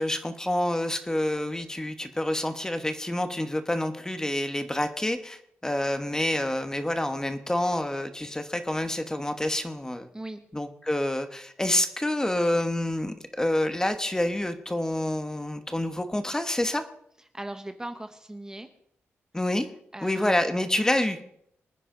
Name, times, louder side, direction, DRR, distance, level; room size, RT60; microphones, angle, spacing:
voice 1, 0.0-10.1 10.5-16.8 19.3-19.7 20.0-21.3, left 1 dB, 10° left, 8 dB, 1.2 m, -28 dB
voice 2, 10.1-10.4 17.3-18.7 19.9-20.4, right 1 dB, 15° right, 7 dB, 1.1 m, -38 dB
24.5 x 9.8 x 3.9 m, 0.72 s
wide cardioid pair, 105°, 5 cm